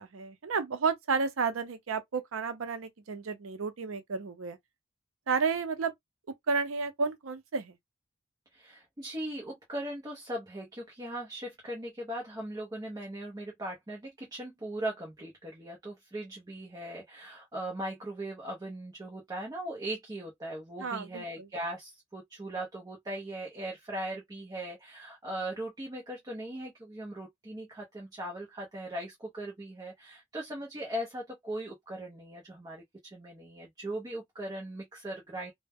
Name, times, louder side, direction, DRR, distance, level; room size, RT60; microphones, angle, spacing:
voice 1, 0.0-4.6 5.3-5.9 6.5-7.7 20.8-21.5, right 5 dB, 85° right, 0.6 m, -31 dB
voice 2, 8.5-35.5, right 1 dB, 20° right, 0.6 m, -39 dB
2.1 x 2.1 x 3.4 m
head